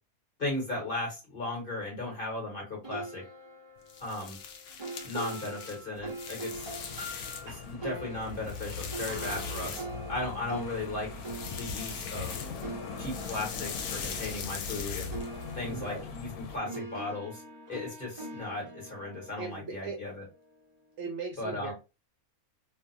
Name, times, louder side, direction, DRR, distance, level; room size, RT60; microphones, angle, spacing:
voice 1, 0.4-3.2 4.0-4.4 5.0-6.7 7.4-11.2 11.6-12.5 13.0-15.2 15.5-17.4 17.7-20.2 21.4-21.7, left 2 dB, 40° left, -1 dB, 1.2 m, -36 dB
sound 1, 2.8-14.8 15.1-20.3, right 2 dB, 30° right, 0.5 m, -43 dB
sound 2, 3.8-7.7 8.1-10.3 11.1-12.7 13.0-15.5, left 6 dB, 65° left, 0.8 m, -41 dB
sound 3, 6.5-16.6, left 5 dB, 85° left, 1.1 m, -41 dB
voice 2, 15.6-16.1 16.5-16.8 19.4-20.0 21.0-21.7, right 5 dB, 65° right, 2 dB, 0.8 m, -39 dB
2.6 x 2.4 x 2.5 m, 0.28 s
omnidirectional pair, 1.5 m